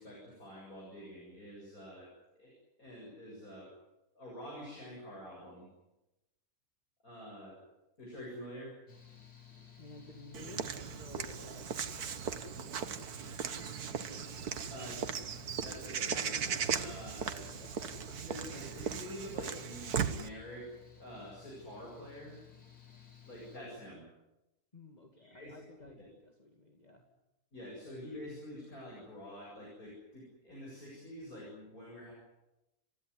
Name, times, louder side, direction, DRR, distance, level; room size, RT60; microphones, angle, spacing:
voice 1, 0.0-2.1 2.3-2.5 2.8-3.7 4.1-5.7 7.0-7.6 8.0-8.8 14.7-15.1 15.6-17.5 18.2-22.4 23.2-24.1 25.2-25.6 25.9-26.0 27.5-32.1, equal, 70° left, -3 dB, 8.0 m, -47 dB
Mechanical fan, 8.9-23.6, left 8 dB, 90° left, 4.1 m, -56 dB
voice 2, 9.8-14.9 15.4-15.7 17.5-17.9 24.7-27.1, left 3 dB, 25° left, 2 dB, 2.4 m, -55 dB
Walk footsteps / Bird vocalization bird call bird song, 10.3-20.3, right 7 dB, 90° right, 1.7 m, -37 dB
28.5 x 15.5 x 9.8 m, 0.96 s
omnidirectional pair, 1.6 m